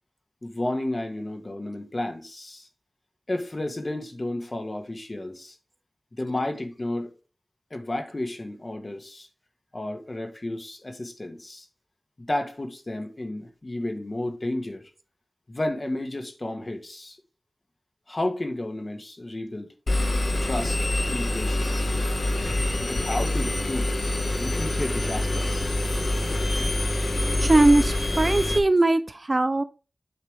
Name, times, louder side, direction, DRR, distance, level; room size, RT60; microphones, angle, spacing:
voice 1, 0.4-2.7 3.3-5.6 6.2-7.1 7.7-9.3 9.7-11.7 12.2-14.9 15.5-17.2 18.1-19.7 20.4-20.8 21.1-21.9 22.8-23.9 24.4-25.8, left 1 dB, 40° left, 1.7 m, -32 dB
Engine, 19.9-28.6, left 1 dB, 65° left, 1.6 m, -25 dB
voice 2, 27.4-29.6, right 2 dB, 45° right, 0.6 m, -20 dB
8.5 x 4.8 x 3.6 m
wide cardioid pair, 60°, 0 cm